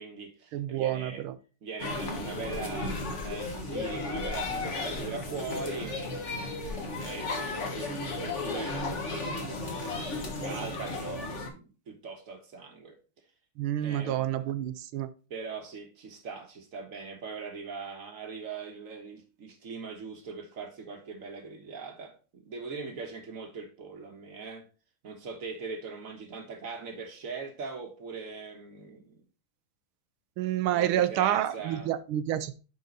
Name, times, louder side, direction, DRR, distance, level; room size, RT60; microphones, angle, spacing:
voice 1, 0.0-1.2 1.6-13.0 13.8-14.2 15.3-24.7 25.0-29.2 30.7-31.9, right 4 dB, 45° right, 1.4 m, -41 dB
voice 2, 0.5-1.4 13.6-15.1 30.4-32.5, right 11 dB, 75° right, 1.4 m, -28 dB
sound 1, 1.8-11.5, left 2 dB, 40° left, 1.2 m, -34 dB
9.2 x 3.9 x 3.9 m
omnidirectional pair, 2.4 m